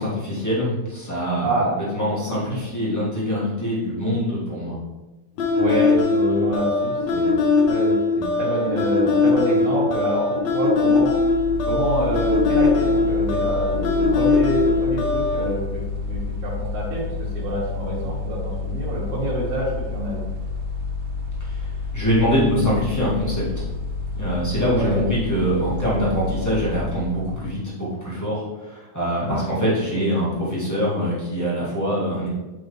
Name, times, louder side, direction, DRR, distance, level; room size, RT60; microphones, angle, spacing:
voice 1, 0.0-1.5 1.9-4.8 21.9-23.6 24.2-32.3, equal, 10° left, -9 dB, 1.4 m, -24 dB
sound 1, 5.4-15.5, left 3 dB, 70° left, 1.9 m, -20 dB
voice 2, 5.5-7.4 7.7-11.2 11.6-20.2 24.8-25.0 29.2-29.4, right 1 dB, 55° right, -9 dB, 2.4 m, -27 dB
Mechanical fan, 10.8-27.7, left 4 dB, 90° right, 2.1 m, -30 dB
8.0 x 3.9 x 3.2 m, 1.1 s
omnidirectional pair, 3.4 m